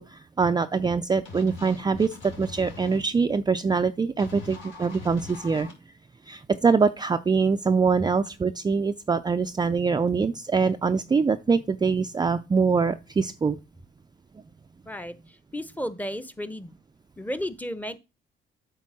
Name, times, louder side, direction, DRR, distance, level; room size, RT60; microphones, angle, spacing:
voice 1, 0.0-5.7 6.3-13.6, right 5 dB, 20° right, 0.4 m, -24 dB
sound 1, 1.2-3.0 4.2-5.7, left 4 dB, 75° left, 3.3 m, -42 dB
voice 2, 15.5-16.7 17.2-18.0, equal, 10° left, 0.8 m, -33 dB
8.4 x 3.5 x 6.1 m
cardioid pair, 90°, 20 cm